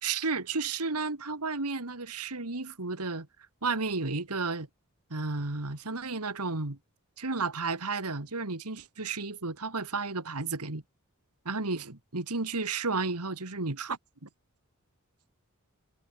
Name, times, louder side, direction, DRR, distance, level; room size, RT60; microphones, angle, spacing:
voice 1, 0.0-3.3 3.6-4.7 5.1-6.8 7.2-10.8 11.5-14.3, right 4 dB, 90° right, 2.2 m, -32 dB
head